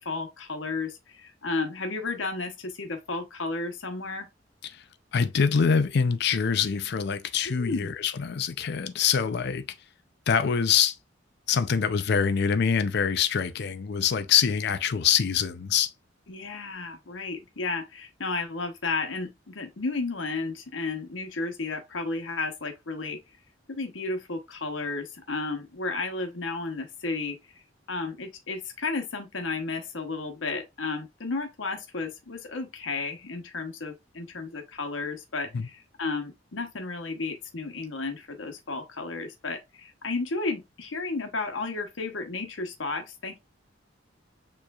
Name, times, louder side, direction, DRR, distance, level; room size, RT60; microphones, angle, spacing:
voice 1, 0.0-4.3 7.5-7.9 16.3-23.2 23.7-27.4 27.9-43.4, left 3 dB, 85° left, 1.0 m, -33 dB
voice 2, 5.1-9.7 10.3-11.0 11.5-15.9 35.5-35.7, left 7 dB, 60° left, 0.5 m, -25 dB
6.8 x 3.1 x 2.3 m
head